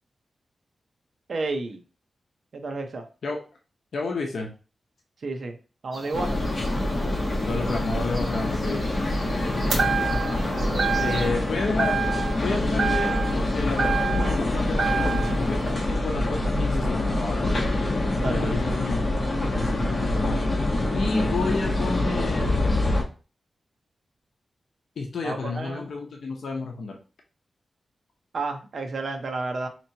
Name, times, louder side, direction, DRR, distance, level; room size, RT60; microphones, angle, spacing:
voice 1, 1.3-1.8 2.5-3.0 5.2-5.6 5.8-6.4 10.6-11.2 18.2-18.4 25.2-25.9 28.3-29.7, right 3 dB, 55° right, 5 dB, 0.6 m, -31 dB
voice 2, 3.9-4.5 7.4-8.9 11.0-12.0 12.4-13.1 13.3-17.4 18.2-19.1 19.4-20.4 20.9-22.5 25.0-27.0, left 3 dB, 80° left, 1 dB, 0.7 m, -31 dB
sound 1, 5.9-11.3, right 1 dB, 35° right, 1.1 m, -40 dB
sound 2, 6.1-23.0, left 1 dB, 35° left, 1.2 m, -25 dB
sound 3, 9.7-10.4 10.8-11.4 11.8-12.5 12.8-14.4 14.8-15.4, right 5 dB, 75° right, 1.1 m, -27 dB
4.3 x 2.9 x 2.8 m, 0.34 s
wide cardioid pair, 175°, 0 cm